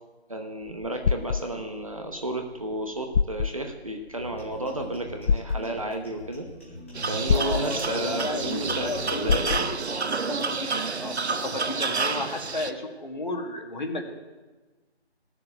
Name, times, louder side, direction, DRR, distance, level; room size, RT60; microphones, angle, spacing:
voice 1, 0.3-6.5 7.1-9.6, right 1 dB, 30° right, 4 dB, 0.9 m, -32 dB
sound 1, 0.7-1.4 2.7-2.8 3.1-3.5 5.3-5.6 7.3-7.6 9.3-9.7, left 5 dB, 85° left, 0.6 m, -24 dB
sound 2, 4.1-9.8, left 1 dB, 10° left, 1.2 m, -42 dB
sound 3, 6.9-12.7, right 4 dB, 80° right, 0.8 m, -29 dB
voice 2, 7.3-14.0, left 2 dB, 45° left, 3 dB, 1.8 m, -33 dB
15.0 x 6.9 x 8.0 m, 1.2 s
figure-of-eight pair, 170°, 33 cm